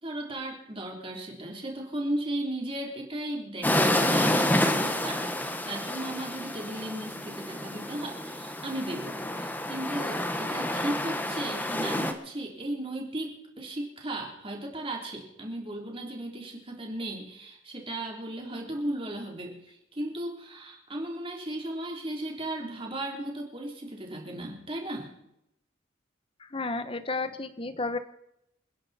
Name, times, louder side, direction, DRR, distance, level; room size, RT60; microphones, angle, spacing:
voice 1, 0.0-25.1, right 1 dB, 25° right, 0 dB, 3.5 m, -36 dB
sound 1, 3.6-12.1, left 1 dB, 10° left, 1.2 m, -29 dB
voice 2, 26.4-28.0, left 3 dB, 25° left, 11 dB, 1.0 m, -32 dB
28.0 x 10.5 x 4.3 m, 0.80 s
head